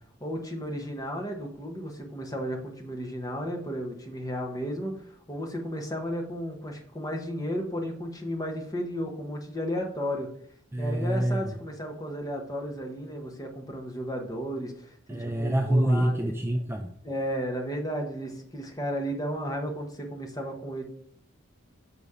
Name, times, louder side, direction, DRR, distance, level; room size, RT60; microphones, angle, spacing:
voice 1, 0.2-10.3 10.8-16.3 17.0-20.8, equal, 15° left, 2 dB, 1.0 m, -33 dB
voice 2, 10.7-11.6 15.1-16.9, right 1 dB, 10° right, 4 dB, 0.3 m, -26 dB
6.9 x 4.1 x 4.8 m, 0.63 s
head